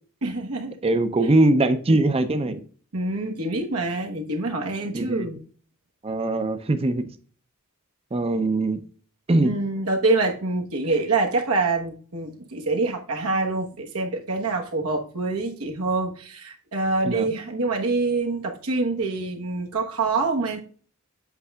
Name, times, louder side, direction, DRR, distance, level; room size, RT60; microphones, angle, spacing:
voice 1, 0.2-0.8 2.9-5.4 9.4-20.6, right 3 dB, 80° right, 1.2 m, -26 dB
voice 2, 0.8-2.6 4.9-5.3 6.0-7.1 8.1-8.8 9.3-9.5 17.1-17.3, right 2 dB, 25° right, 0.5 m, -21 dB
8.1 x 5.3 x 2.3 m
head